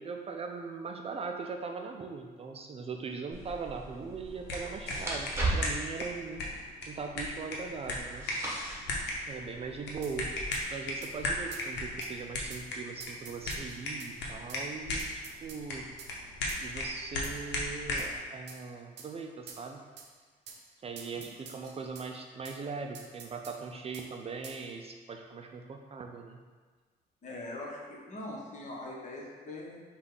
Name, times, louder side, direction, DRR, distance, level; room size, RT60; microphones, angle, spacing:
voice 1, 0.0-8.6 9.3-10.3 10.7-15.9 16.6-19.8 20.8-26.4, right 5 dB, 35° right, 3 dB, 0.3 m, -40 dB
sound 1, 3.3-10.4, right 2 dB, 15° right, 1.2 m, -38 dB
sound 2, 4.3-18.2, left 1 dB, 80° left, 0.9 m, -37 dB
sound 3, 10.0-10.2 10.5-10.6 11.0-11.1 11.5-11.7 12.0-12.1 12.5-12.7 13.0-14.1 14.5-14.6 15.0-15.6 16.0-16.1 16.5-16.6 17.2-17.5 18.0-18.1 18.5-18.6 19.0-19.1 19.5-19.6 20.0-20.1 20.5-20.6 21.0-22.1 22.4-22.6 22.9-23.6 23.9-24.1 24.4-24.6, right 6 dB, 75° right, 0.6 m, -48 dB
voice 2, 27.2-29.8, left 1 dB, 45° left, -3 dB, 1.1 m, -42 dB
5.2 x 2.4 x 3.8 m, 1.5 s
cardioid pair, 95°, 18 cm